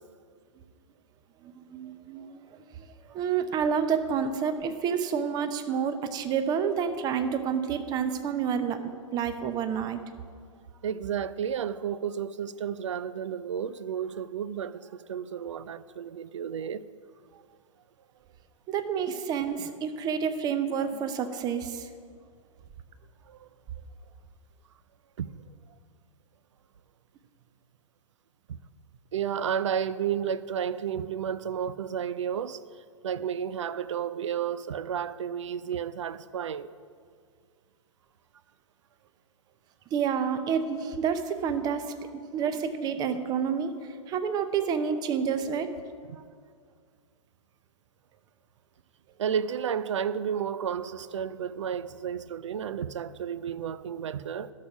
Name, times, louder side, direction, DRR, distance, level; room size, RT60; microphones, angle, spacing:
voice 1, 1.4-10.0 18.7-21.9 39.9-45.7, right 7 dB, 25° right, 0.7 m, -29 dB
voice 2, 10.8-16.8 17.3-17.4 23.3-23.5 25.2-25.3 28.5-28.6 29.1-32.6 33.0-36.7 46.1-46.2 49.2-54.5, right 8 dB, 65° right, 0.5 m, -32 dB
11.5 x 6.6 x 6.0 m
figure-of-eight pair, 110°, 17 cm